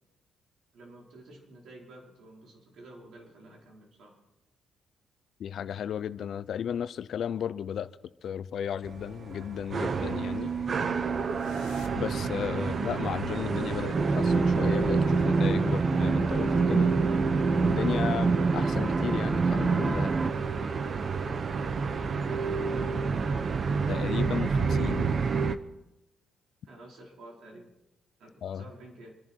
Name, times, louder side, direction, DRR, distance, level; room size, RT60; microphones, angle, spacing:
voice 1, 0.7-4.2 12.4-12.7 22.1-23.0 26.6-27.7 28.2-29.1, right 1 dB, 70° right, 4.7 m, -50 dB
voice 2, 5.4-7.9 8.2-10.5 11.9-16.9 17.6-20.1 23.9-25.1 28.4-28.6, left 8 dB, 65° left, 0.7 m, -34 dB
sound 1, 8.8-25.6, right 5 dB, 45° right, 0.9 m, -30 dB
sound 2, 9.0-14.6, left 8 dB, 85° left, 1.0 m, -51 dB
sound 3, 13.9-20.3, right 4 dB, 25° right, 0.6 m, -25 dB
27.5 x 11.0 x 4.6 m
cardioid pair, 90°, 0 cm